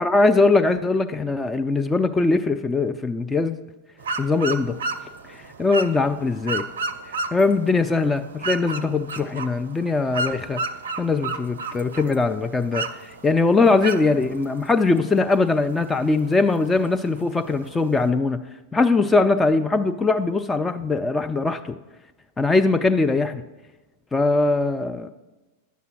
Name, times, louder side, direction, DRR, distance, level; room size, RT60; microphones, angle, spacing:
voice 1, 0.0-3.6 4.2-4.8 5.3-6.7 7.1-10.6 11.0-18.5 18.7-21.8 22.4-23.4 24.1-25.1, left 3 dB, 10° left, 8 dB, 0.3 m, -21 dB
sound 1, 4.0-18.1, right 3 dB, 65° right, 0.4 m, -34 dB
9.2 x 6.8 x 3.1 m, 1.1 s
figure-of-eight pair, 90°, 0 cm